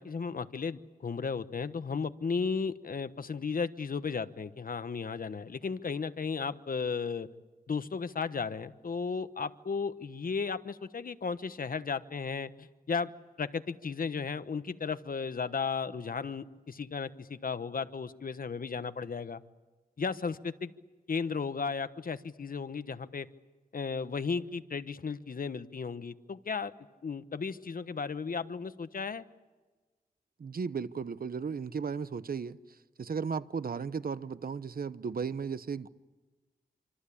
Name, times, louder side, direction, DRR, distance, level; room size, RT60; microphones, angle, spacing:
voice 1, 0.0-7.3 7.7-13.1 13.4-19.4 20.0-20.7 21.1-23.3 23.7-26.7 27.0-29.2, left 5 dB, 60° left, 1.2 m, -35 dB
voice 2, 30.4-32.6 33.0-35.9, right 6 dB, 70° right, 1.0 m, -35 dB
26.5 x 26.0 x 8.6 m
wide cardioid pair, 85°, 16 cm